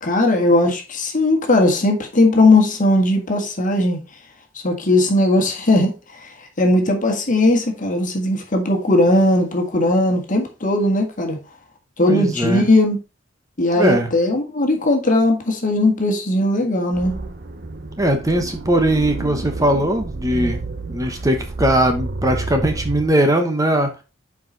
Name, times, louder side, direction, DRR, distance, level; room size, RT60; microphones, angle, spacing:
voice 1, 0.0-4.0 4.6-11.4 12.0-13.0 13.6-17.2, left 2 dB, 45° left, 1.6 m, -18 dB
voice 2, 12.0-12.6 13.8-14.1 18.0-20.6 20.9-23.9, right 1 dB, 15° right, 1.0 m, -19 dB
sound 1, 16.9-23.1, right 3 dB, 55° right, 1.1 m, -30 dB
7.1 x 4.9 x 3.9 m
head